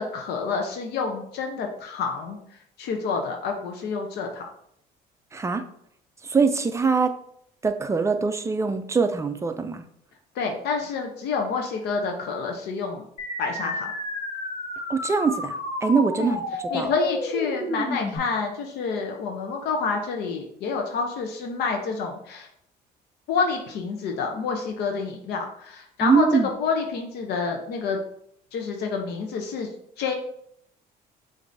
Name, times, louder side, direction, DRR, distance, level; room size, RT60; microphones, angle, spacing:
voice 1, 0.0-2.4 2.8-4.5 10.3-13.0 13.4-13.9 16.2-16.4 16.7-22.5 23.3-28.0 28.5-29.7 30.0-30.1, left 5 dB, 75° left, 3 dB, 0.7 m, -28 dB
voice 2, 5.3-5.6 6.2-7.1 7.6-9.8 14.9-16.9 26.0-26.5, right 5 dB, 15° right, 8 dB, 0.4 m, -23 dB
sound 1, 13.2-18.2, left 1 dB, 45° left, 1.4 m, -31 dB
6.6 x 2.6 x 2.6 m, 0.70 s
cardioid pair, 110°, 17 cm